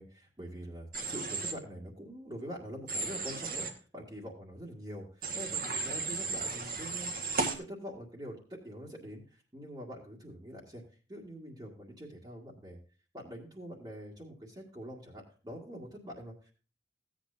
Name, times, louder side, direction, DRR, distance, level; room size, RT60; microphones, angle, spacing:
voice 1, 0.0-7.1 7.4-10.8 11.1-12.8 13.1-16.5, equal, 25° right, -5 dB, 2.0 m, -45 dB
Human voice / Train, 0.9-1.5 2.9-3.7 5.2-7.5, right 4 dB, 50° right, 1.8 m, -34 dB
16.0 x 8.8 x 2.7 m, 0.37 s
head